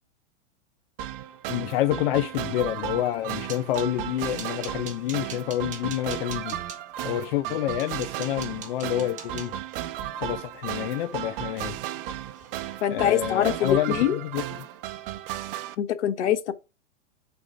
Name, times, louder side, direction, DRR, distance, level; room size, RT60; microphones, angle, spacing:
sound 1, 1.0-15.7, right 12 dB, 50° right, 0.8 m, -35 dB
voice 1, 1.5-6.6 7.0-9.5 10.2-11.8 12.9-14.7, left 13 dB, 55° left, 0.6 m, -28 dB
sound 2, 3.0-3.9 4.4-6.8 7.4-7.5 7.8-12.0 12.3-12.8 13.0-13.2 13.6-13.8, right 6 dB, 20° right, 1.3 m, -44 dB
voice 2, 12.8-14.2 15.8-16.5, left 10 dB, 70° left, 1.2 m, -24 dB
7.4 x 4.3 x 4.9 m
hypercardioid pair, 135°, 36 cm